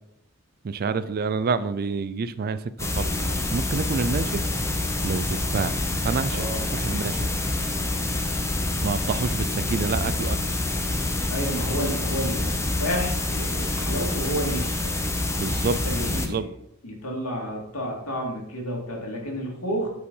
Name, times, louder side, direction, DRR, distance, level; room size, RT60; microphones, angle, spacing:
voice 1, 0.6-4.4 5.0-5.7 6.0-6.5 6.7-7.3 8.8-10.4 15.4-16.5, right 4 dB, 45° right, 15 dB, 0.4 m, -28 dB
sound 1, 2.8-16.3, left 2 dB, 15° left, 0.8 m, -27 dB
voice 2, 6.3-6.6 11.3-15.0 15.8-16.5 16.8-19.9, equal, 75° left, -1 dB, 2.6 m, -31 dB
8.4 x 4.9 x 5.4 m, 0.80 s
head